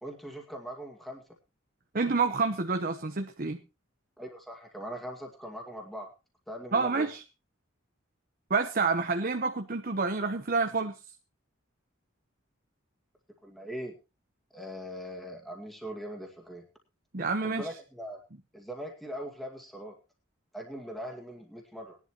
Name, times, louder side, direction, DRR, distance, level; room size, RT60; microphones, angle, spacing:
voice 1, 0.0-1.2 4.2-6.1 6.5-7.1 13.4-14.0 14.5-16.7 17.4-18.2 18.5-20.0 20.5-22.0, equal, ahead, 0 dB, 2.1 m, -41 dB
voice 2, 1.9-3.6 6.7-7.2 8.5-11.0 17.1-17.7, right 4 dB, 45° right, 6 dB, 0.9 m, -28 dB
19.0 x 11.0 x 3.0 m, 0.29 s
head